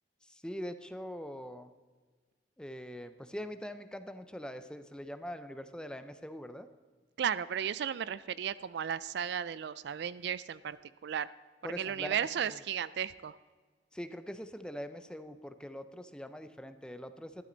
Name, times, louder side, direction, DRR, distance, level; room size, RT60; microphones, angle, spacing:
voice 1, 0.2-1.7 2.6-6.7 11.6-12.6 13.9-17.4, equal, 5° left, 10 dB, 0.5 m, -43 dB
voice 2, 7.2-10.8 11.0-11.3 11.8-13.4, right 8 dB, 65° right, 17 dB, 0.3 m, -34 dB
12.5 x 12.0 x 3.9 m, 1.4 s
head